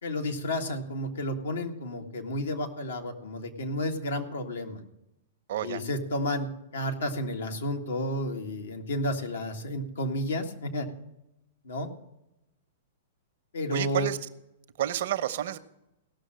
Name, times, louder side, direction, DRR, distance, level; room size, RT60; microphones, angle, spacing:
voice 1, 0.0-4.8 5.6-10.9 11.6-11.9 13.5-14.1, left 1 dB, 80° left, 3 dB, 1.8 m, -31 dB
voice 2, 5.5-5.8 13.7-14.3 14.8-15.6, right 12 dB, 65° right, 10 dB, 0.9 m, -30 dB
17.0 x 6.4 x 7.6 m, 0.88 s
hypercardioid pair, 120°, 0 cm